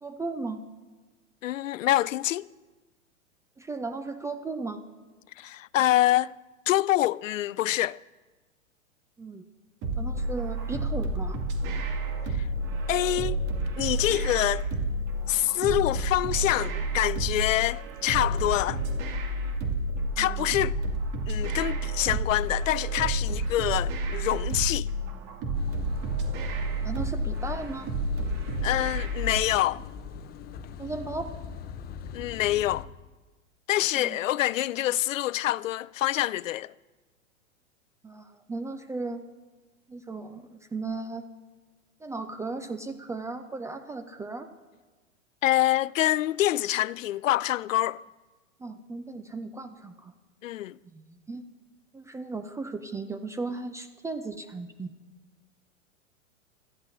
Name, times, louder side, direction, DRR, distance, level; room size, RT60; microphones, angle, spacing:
voice 1, 0.0-0.6 3.6-4.8 9.2-9.4 10.0-11.4 20.2-20.5 26.8-27.9 30.8-31.3 33.9-34.2 38.0-39.2 39.9-41.3 42.0-44.5 48.6-50.1 50.9-51.4 51.9-54.9, right 3 dB, 5° right, 0.5 m, -36 dB
voice 2, 1.4-2.5 5.4-6.3 6.7-8.0 12.4-12.5 12.9-13.4 13.8-14.6 15.3-18.8 20.2-20.8 21.3-24.9 28.6-29.8 32.1-32.9 33.7-36.7 45.4-48.0 50.4-50.8, left 14 dB, 70° left, 0.5 m, -26 dB
sound 1, 9.8-29.4, right 1 dB, 40° right, 2.5 m, -30 dB
sound 2, 25.5-32.9, left 7 dB, 25° left, 0.8 m, -41 dB
25.5 x 14.0 x 2.7 m
figure-of-eight pair, 100°, 40 cm